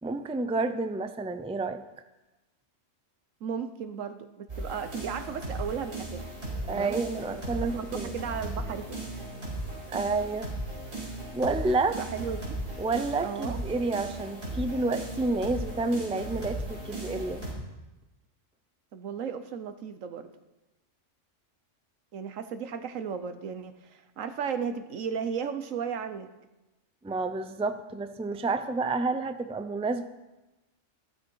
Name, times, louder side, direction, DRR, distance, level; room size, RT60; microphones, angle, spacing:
voice 1, 0.0-1.8 6.7-8.1 9.9-10.5 11.3-12.0 12.8-17.4 27.0-30.1, right 3 dB, 10° right, 9 dB, 0.3 m, -29 dB
voice 2, 3.4-6.3 6.7-7.0 7.3-8.9 11.9-12.6 13.2-13.6 18.9-20.3 22.1-26.3, right 7 dB, 85° right, 10 dB, 1.3 m, -35 dB
sound 1, 4.5-17.5, right 1 dB, 55° right, 5.0 m, -37 dB
15.0 x 13.0 x 4.7 m, 1.0 s
omnidirectional pair, 1.3 m